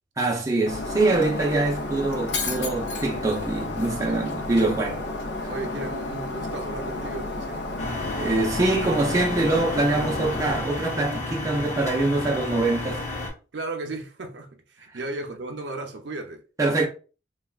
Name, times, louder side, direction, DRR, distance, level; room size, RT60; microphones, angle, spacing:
voice 1, 0.2-5.0 8.2-13.0 16.6-16.9, right 2 dB, 20° right, 0.5 m, -24 dB
Shatter, 0.7-10.6, left 2 dB, 70° left, 0.5 m, -31 dB
voice 2, 4.1-4.4 5.4-7.8 13.5-16.4, right 2 dB, 65° right, 0.5 m, -35 dB
sound 1, 7.8-13.3, left 2 dB, 40° left, 0.9 m, -32 dB
3.3 x 2.3 x 2.3 m
head